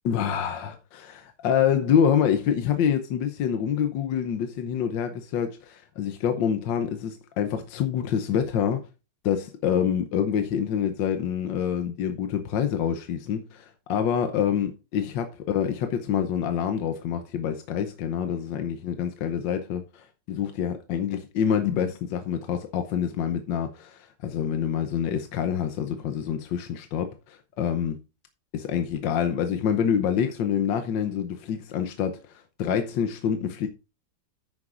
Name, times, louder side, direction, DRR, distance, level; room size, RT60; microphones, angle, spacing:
voice 1, 0.0-8.9 9.2-28.0 28.5-33.7, left 8 dB, 80° left, 1.5 m, -26 dB
9.8 x 8.9 x 2.5 m
omnidirectional pair, 1.9 m